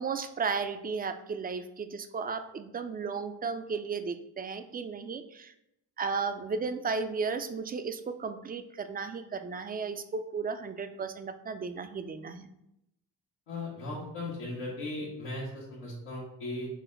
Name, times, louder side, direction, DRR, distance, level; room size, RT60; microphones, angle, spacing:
voice 1, 0.0-5.5 6.0-12.5, right 5 dB, 25° right, 9 dB, 0.3 m, -34 dB
voice 2, 13.5-16.7, left 2 dB, 90° left, -9 dB, 1.2 m, -37 dB
5.0 x 2.2 x 3.7 m, 0.82 s
supercardioid pair, 55°, 44 cm